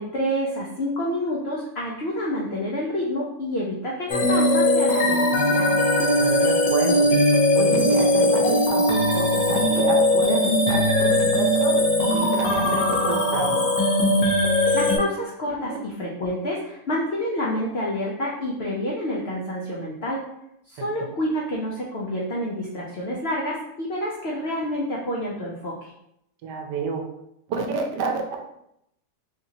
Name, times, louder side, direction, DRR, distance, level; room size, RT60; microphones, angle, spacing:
voice 1, 0.0-5.8 14.7-20.2 20.7-25.9, equal, 85° left, -4 dB, 0.5 m, -28 dB
sound 1, 4.1-15.0, left 1 dB, 65° left, 1.0 m, -20 dB
voice 2, 6.2-7.1 7.6-13.6 15.7-15.8 20.8-20.9 26.4-27.1 27.5-28.5, right 4 dB, 75° right, 3 dB, 1.1 m, -29 dB
3.5 x 2.9 x 2.7 m, 0.78 s
omnidirectional pair, 1.9 m